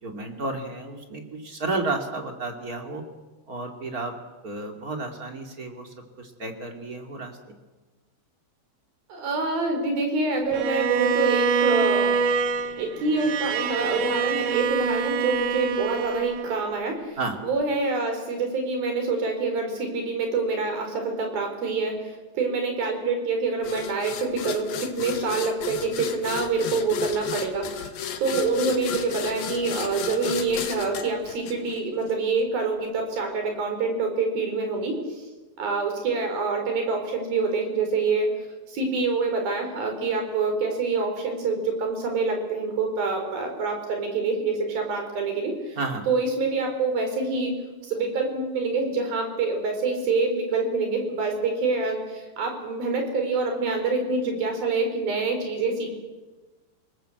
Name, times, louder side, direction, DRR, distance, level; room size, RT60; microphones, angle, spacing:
voice 1, 0.0-3.0 3.5-4.1 4.4-7.4 17.2-17.4 45.8-46.1, right 3 dB, 25° right, 4 dB, 2.6 m, -32 dB
voice 2, 9.1-12.1 12.8-27.7 28.2-35.2 35.6-38.3 38.7-45.8 46.1-47.5 47.9-56.0, right 3 dB, 80° right, 4 dB, 6.2 m, -26 dB
Bowed string instrument, 10.5-16.8, right 5 dB, 65° right, 1.6 m, -25 dB
sound 1, 23.6-32.1, left 7 dB, 80° left, 3.3 m, -34 dB
28.5 x 19.0 x 7.9 m, 1.2 s
omnidirectional pair, 4.1 m